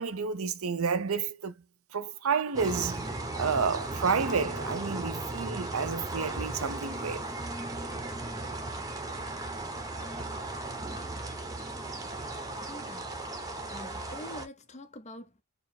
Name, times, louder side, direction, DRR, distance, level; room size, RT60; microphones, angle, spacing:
voice 1, 0.0-1.5 1.9-7.2, right 5 dB, 80° right, 0.7 m, -30 dB
sound 1, 2.5-14.5, right 2 dB, 15° right, 0.8 m, -36 dB
voice 2, 12.7-13.1 13.7-15.4, left 1 dB, 30° left, 0.7 m, -45 dB
4.5 x 2.0 x 3.6 m
head